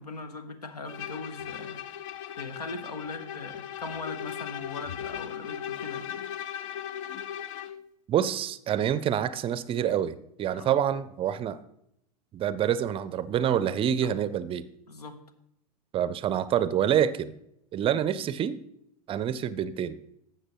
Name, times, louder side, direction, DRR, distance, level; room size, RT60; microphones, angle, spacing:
voice 1, 0.0-1.8 2.3-6.1 10.5-10.7 13.9-14.2 14.9-15.2, left 3 dB, 85° left, 10 dB, 1.0 m, -40 dB
Bowed string instrument, 0.9-7.8, left 10 dB, 55° left, 0.5 m, -38 dB
voice 2, 8.1-11.6 12.3-14.6 15.9-17.3 17.7-18.6 19.1-20.0, right 9 dB, 30° right, 16 dB, 0.5 m, -27 dB
12.5 x 7.8 x 3.0 m, 0.76 s
hypercardioid pair, 95°, 20 cm